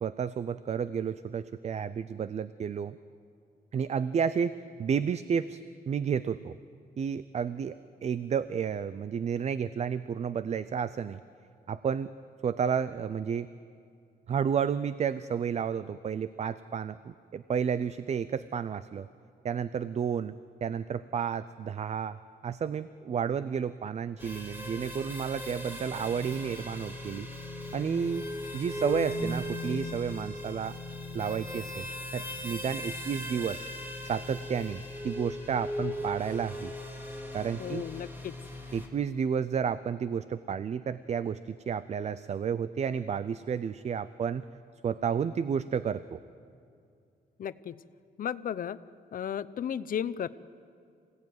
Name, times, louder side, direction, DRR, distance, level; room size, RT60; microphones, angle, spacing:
voice 1, 0.0-3.0 3.7-6.6 7.0-7.8 8.0-11.2 11.7-12.1 12.4-13.5 14.3-19.1 19.4-20.3 20.6-27.3 27.7-28.3 28.5-30.8 31.1-31.8 32.1-33.6 34.0-36.7 37.3-37.8 38.7-44.4 44.8-46.2, right 7 dB, 45° right, 15 dB, 0.5 m, -31 dB
sound 1, 24.2-38.9, left 1 dB, 10° right, 2.6 m, -38 dB
voice 2, 37.6-38.4 47.4-47.8 48.2-48.8 49.1-50.3, left 9 dB, 60° left, 15 dB, 0.7 m, -34 dB
27.0 x 17.0 x 9.5 m, 2.4 s
wide cardioid pair, 170°, 17 cm